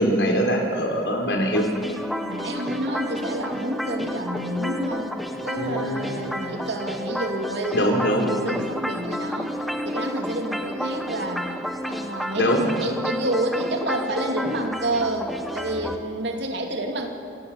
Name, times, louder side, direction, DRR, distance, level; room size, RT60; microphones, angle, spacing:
voice 1, 0.0-1.7 5.6-6.1 7.7-8.3 12.4-12.6, equal, 75° left, 1 dB, 4.0 m, -22 dB
sound 1, 1.5-16.0, equal, ahead, 1.1 m, -31 dB
voice 2, 2.3-5.2 5.4-9.5 9.8-11.5 11.9-17.1, right 1 dB, 70° right, 3 dB, 2.8 m, -29 dB
28.0 x 17.0 x 7.4 m, 2.6 s
head